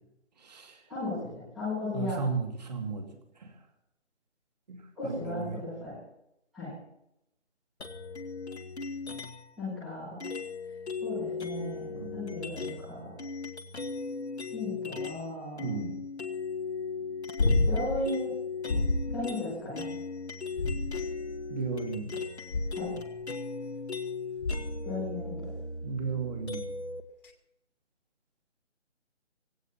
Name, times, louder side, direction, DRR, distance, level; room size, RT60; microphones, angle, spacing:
voice 1, 0.9-1.3 1.5-2.2 5.0-6.0 6.5-6.7 9.6-10.1 11.0-13.1 14.5-15.7 17.7-18.3 19.1-19.8 22.7-22.9 24.8-25.5, left 2 dB, ahead, -17 dB, 0.8 m, -35 dB
voice 2, 1.9-3.1 4.7-4.8 5.0-5.6 11.9-12.2 15.6-16.0 21.5-22.1 25.8-26.7, right 5 dB, 35° right, 4 dB, 2.5 m, -34 dB
sound 1, 7.8-9.5 10.2-15.3 15.6-27.0, left 4 dB, 65° left, 1.9 m, -38 dB
sound 2, 17.4-18.0 18.7-19.2 20.5-21.3 22.5-23.0 24.4-24.9 27.2-27.3, left 2 dB, 45° left, 2.3 m, -28 dB
17.5 x 17.0 x 4.2 m, 0.84 s
figure-of-eight pair, 170°, 36 cm